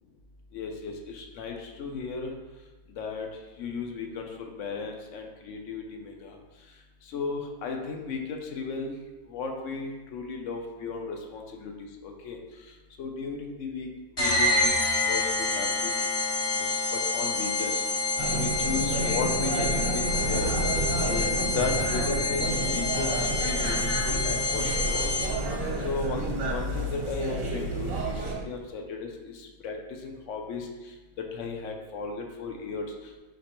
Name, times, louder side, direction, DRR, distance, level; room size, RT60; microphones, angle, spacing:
voice 1, 0.5-2.3 3.0-3.3 3.6-4.3 4.6-6.4 7.1-8.9 9.3-11.7 12.0-12.4 13.0-13.9 14.2-14.7 15.1-15.9 16.6-17.7 18.3-20.5 21.0-21.2 21.5-25.1 25.8-29.8 30.0-30.7 31.3-32.8, left 4 dB, 65° left, 3 dB, 0.9 m, -35 dB
sound 1, 14.2-25.6, left 3 dB, 40° left, 0.5 m, -28 dB
sound 2, 18.2-28.4, right 2 dB, 65° right, 1.2 m, -30 dB
5.1 x 3.2 x 3.0 m, 1.2 s
omnidirectional pair, 1.5 m